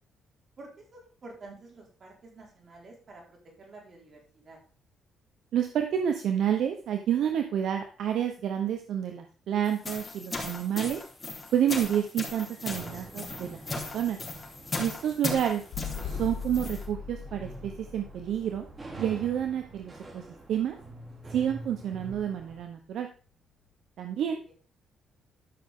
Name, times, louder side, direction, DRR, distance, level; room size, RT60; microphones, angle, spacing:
voice 1, 0.6-4.6, right 2 dB, 45° right, 0 dB, 4.7 m, -49 dB
voice 2, 5.5-11.0 11.5-14.2 14.8-15.6 16.0-18.6 19.0-20.8 21.3-23.1 24.0-24.4, right 9 dB, 75° right, 5 dB, 1.0 m, -29 dB
sound 1, 9.6-16.9, left 3 dB, 25° left, 4.3 m, -37 dB
sound 2, 12.7-22.6, right 2 dB, 30° right, 3.3 m, -46 dB
sound 3, 15.7-20.3 22.1-22.2, left 6 dB, 75° left, 1.6 m, -40 dB
13.5 x 6.2 x 3.8 m, 0.40 s
cardioid pair, 90°, 0 cm